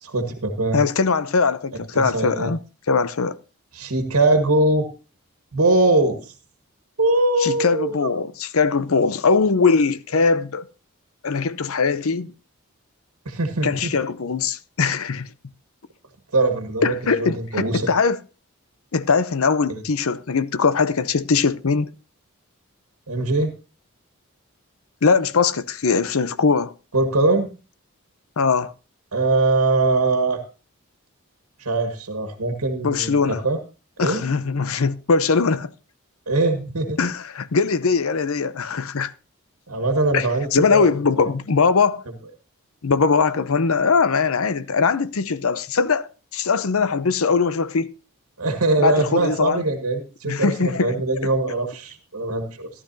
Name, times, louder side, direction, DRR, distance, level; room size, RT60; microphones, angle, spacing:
voice 1, 0.0-0.8 1.9-2.5 3.7-4.9 5.5-6.3 7.0-8.2 13.2-13.9 16.3-17.9 19.7-19.8 23.1-23.5 26.9-27.5 29.1-30.4 31.6-33.1 33.4-33.6 34.0-34.2 36.3-37.0 39.7-40.8 41.2-41.3 48.4-52.7, right 2 dB, 80° right, 1.6 m, -21 dB
voice 2, 0.7-2.6 2.9-3.4 7.4-10.6 11.2-12.3 13.6-15.3 16.8-18.2 18.9-21.9 25.0-26.7 28.4-28.7 32.8-33.4 34.0-35.7 37.0-39.1 40.1-42.0 42.8-47.9 48.8-49.6 50.2-50.9, left 4 dB, 70° left, 0.7 m, -21 dB
14.5 x 12.0 x 2.7 m
head